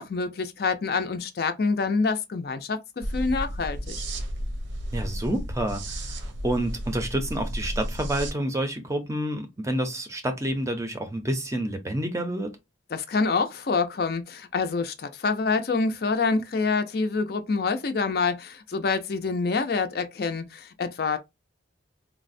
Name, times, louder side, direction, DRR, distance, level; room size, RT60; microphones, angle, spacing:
voice 1, 0.0-4.0 12.9-21.2, left 4 dB, 55° left, 0.4 m, -26 dB
sound 1, 3.0-8.3, equal, 80° right, 0.7 m, -33 dB
voice 2, 4.9-12.6, right 1 dB, 15° right, 0.5 m, -29 dB
3.9 x 2.1 x 2.5 m
head